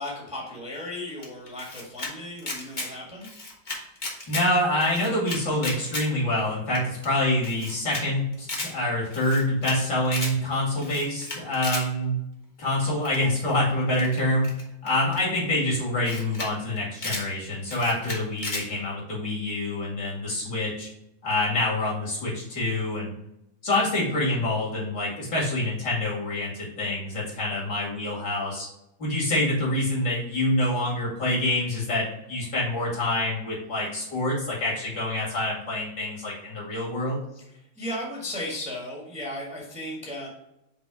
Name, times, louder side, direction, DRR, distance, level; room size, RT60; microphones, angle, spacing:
voice 1, 0.0-3.3 37.3-40.3, left 1 dB, 5° right, -3 dB, 1.5 m, -35 dB
Camera, 1.2-2.1 2.4-2.9 3.2-4.5 4.8-6.1 6.4-6.5 6.7-6.8 7.0-7.1 7.4-8.0 8.3-8.7 9.1-9.8 10.0-10.3 10.8-11.8 13.0-13.3 13.9-15.2 15.7-15.8 16.0-16.5 16.8-17.3 17.7-18.6, left 2 dB, 30° left, 1.1 m, -34 dB
voice 2, 4.3-12.2 12.6-20.9 21.2-23.1 23.6-28.7 29.0-37.2, left 1 dB, 55° left, -4 dB, 2.9 m, -26 dB
5.7 x 3.8 x 4.8 m, 0.86 s
omnidirectional pair, 2.2 m